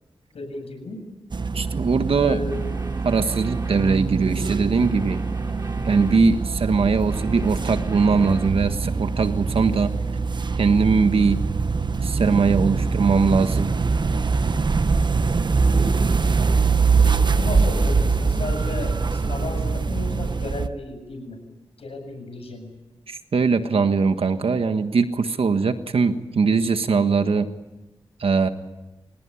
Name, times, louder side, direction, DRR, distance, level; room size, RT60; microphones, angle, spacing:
voice 1, 0.3-1.0 2.2-2.7 15.7-16.2 17.0-21.4 21.8-22.7, left 2 dB, 75° left, 6 dB, 7.8 m, -34 dB
sound 1, 1.3-20.7, right 4 dB, 50° right, 1.1 m, -23 dB
voice 2, 1.5-2.4 3.0-5.2 5.8-9.9 10.6-11.4 12.0-13.8 23.1-27.5 28.2-28.5, right 4 dB, 65° right, 8 dB, 1.5 m, -21 dB
sound 2, 2.5-4.1 4.8-6.3 6.8-8.6, right 1 dB, 30° right, 4.7 m, -39 dB
29.5 x 17.0 x 9.8 m, 1.1 s
cardioid pair, 60°, 10 cm